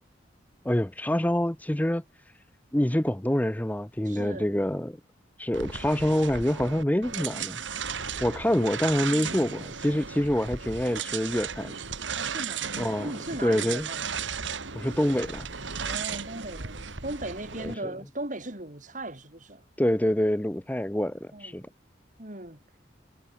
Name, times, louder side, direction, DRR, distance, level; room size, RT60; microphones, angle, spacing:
voice 1, 0.6-2.0 2.7-5.0 5.4-7.6 8.2-11.7 12.8-13.1 13.4-13.9 14.7-15.5 17.6-17.7 19.8-21.6, left 1 dB, 10° left, 0.6 m, -26 dB
voice 2, 4.0-4.6 9.1-9.4 12.1-14.1 15.8-19.6 21.3-21.6 22.2-22.6, right 1 dB, 40° right, 3.3 m, -38 dB
sound 1, 5.5-17.7, right 6 dB, 75° right, 2.3 m, -35 dB
head